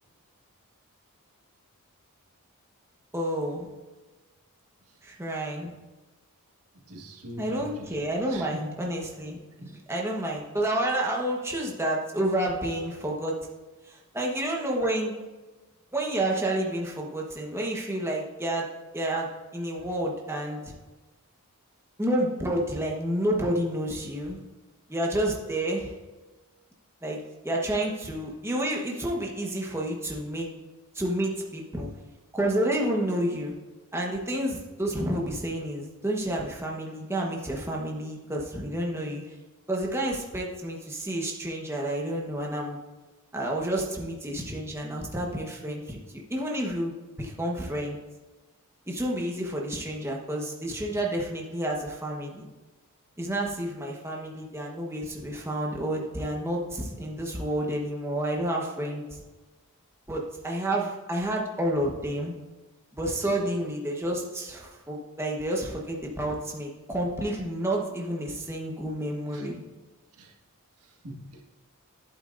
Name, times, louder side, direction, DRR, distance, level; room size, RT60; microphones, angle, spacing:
voice 1, 3.1-3.7 5.0-5.7 7.4-9.4 9.9-13.4 13.8-15.1 15.9-18.7 18.9-20.6 22.0-24.4 24.9-25.9 27.0-27.2 27.4-30.5 30.9-31.9 32.3-33.5 33.9-39.4 39.7-42.8 43.3-46.9 47.2-48.0 48.9-52.5 53.2-59.0 60.1-62.3 62.9-69.6, right 1 dB, 10° right, -2 dB, 1.1 m, -30 dB
voice 2, 6.9-8.0 8.3-8.5 9.6-9.7 69.3-69.5 70.1-70.3 70.8-71.4, right 1 dB, 85° right, 1 dB, 1.7 m, -43 dB
11.5 x 8.7 x 2.6 m, 1.2 s
head